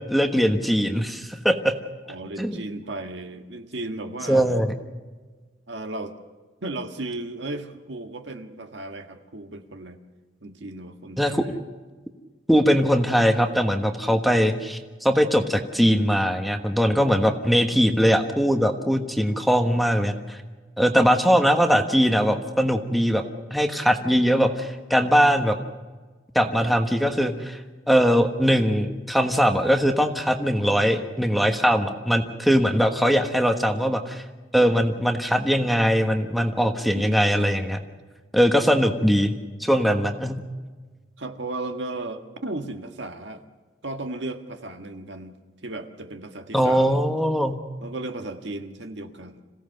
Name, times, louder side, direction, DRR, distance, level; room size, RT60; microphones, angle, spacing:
voice 1, 0.1-1.7 2.4-2.6 4.3-4.7 11.2-11.4 12.5-20.4 20.8-23.2 23.5-25.6 26.3-27.6 27.9-34.2 34.5-37.8 38.3-39.3 39.6-40.4 46.5-47.6, equal, ahead, 5 dB, 1.2 m, -21 dB
voice 2, 2.1-4.6 5.7-6.1 6.6-10.0 10.4-11.6 17.6-17.8 19.3-19.5 26.6-26.8 36.9-37.4 41.2-43.4 43.8-45.4 45.6-47.0 47.8-49.4, right 2 dB, 70° right, 6 dB, 1.7 m, -35 dB
27.0 x 16.5 x 6.7 m, 1.4 s
head